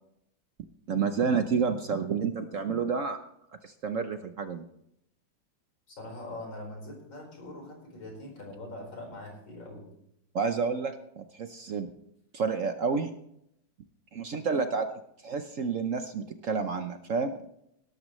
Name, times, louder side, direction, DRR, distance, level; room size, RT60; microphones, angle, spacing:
voice 1, 0.9-3.2 3.6-4.6 10.3-11.9 12.3-13.1 14.1-14.9 15.2-17.4, right 5 dB, 60° right, 8 dB, 0.9 m, -29 dB
voice 2, 5.9-9.9, left 1 dB, 90° left, 1 dB, 5.5 m, -42 dB
17.5 x 13.5 x 3.1 m, 0.75 s
omnidirectional pair, 2.1 m